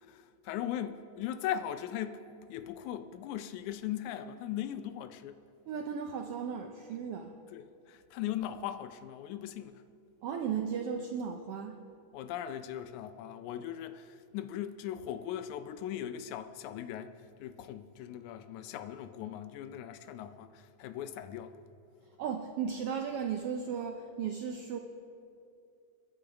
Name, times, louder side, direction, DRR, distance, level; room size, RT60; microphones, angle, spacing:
voice 1, 0.0-5.4 7.5-9.8 12.1-21.5, left 10 dB, 85° left, 10 dB, 2.1 m, -39 dB
voice 2, 5.7-7.3 10.2-11.8 22.2-24.8, right 7 dB, 80° right, 4 dB, 1.3 m, -35 dB
29.5 x 10.5 x 3.5 m, 2.6 s
omnidirectional pair, 3.4 m